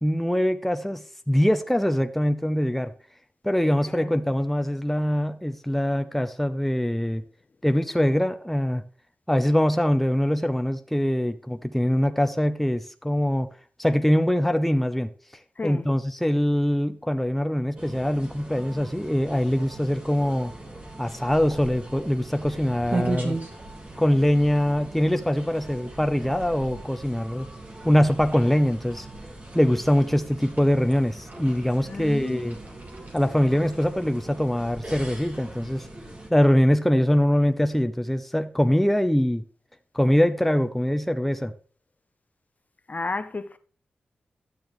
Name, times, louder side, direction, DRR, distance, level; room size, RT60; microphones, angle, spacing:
voice 1, 0.0-2.9 3.4-7.2 7.6-8.8 9.3-13.5 13.8-15.1 15.6-20.5 21.0-23.4 24.0-27.5 27.8-29.1 29.5-32.6 33.1-35.9 36.3-39.4 39.9-41.5, equal, 5° left, 0.7 m, -23 dB
sound 1, 17.8-36.3, right 1 dB, 35° right, 2.9 m, -43 dB
sound 2, 21.1-35.6, right 2 dB, 50° right, 2.6 m, -39 dB
voice 2, 31.8-32.4 42.9-43.6, left 3 dB, 45° left, 0.8 m, -32 dB
12.5 x 7.0 x 3.2 m
cardioid pair, 50°, 4 cm